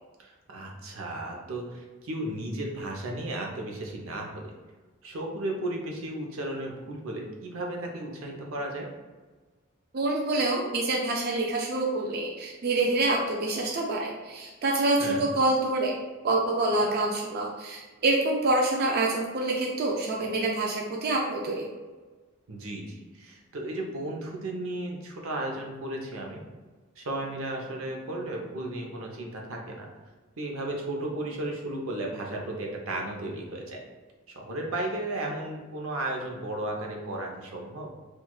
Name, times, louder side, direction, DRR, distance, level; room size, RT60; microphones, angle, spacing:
voice 1, 0.2-4.5 5.0-8.9 15.0-15.3 22.5-26.4 27.0-29.9 30.4-33.8 34.3-37.9, right 1 dB, 85° right, 0 dB, 0.7 m, -34 dB
voice 2, 9.9-15.9 16.2-21.7, right 2 dB, 50° right, -1 dB, 0.4 m, -26 dB
4.5 x 2.3 x 2.3 m, 1.3 s
head